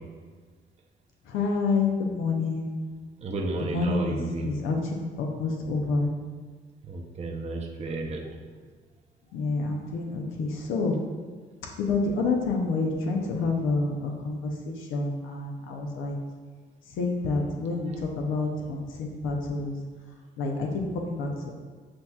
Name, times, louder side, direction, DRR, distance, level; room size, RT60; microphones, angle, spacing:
voice 1, 1.3-2.9 3.6-4.2 4.4-4.8 5.2-6.1 9.3-11.0 11.8-16.2 17.0-19.8 20.4-20.7 20.9-21.3, left 3 dB, 85° left, 1 dB, 0.6 m, -28 dB
voice 2, 3.2-4.5 6.9-8.3, right 3 dB, 35° right, 0 dB, 0.6 m, -32 dB
7.4 x 2.9 x 2.3 m, 1.5 s
cardioid pair, 90°, 20 cm